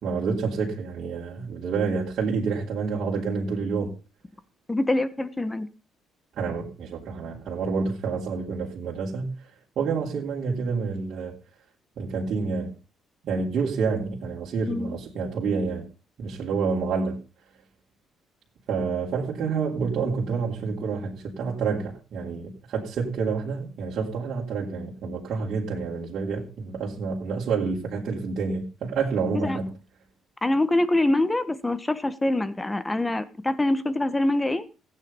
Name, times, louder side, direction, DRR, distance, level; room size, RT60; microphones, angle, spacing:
voice 1, 0.0-3.9 6.4-9.3 9.8-11.4 12.0-12.7 13.2-15.9 16.2-17.2 18.7-29.7, right 5 dB, 60° right, 3.3 m, -28 dB
voice 2, 4.7-5.7 14.7-15.0 29.3-29.6 30.4-34.7, left 1 dB, 15° left, 1.3 m, -24 dB
15.5 x 9.3 x 5.4 m
cardioid pair, 115°, 0 cm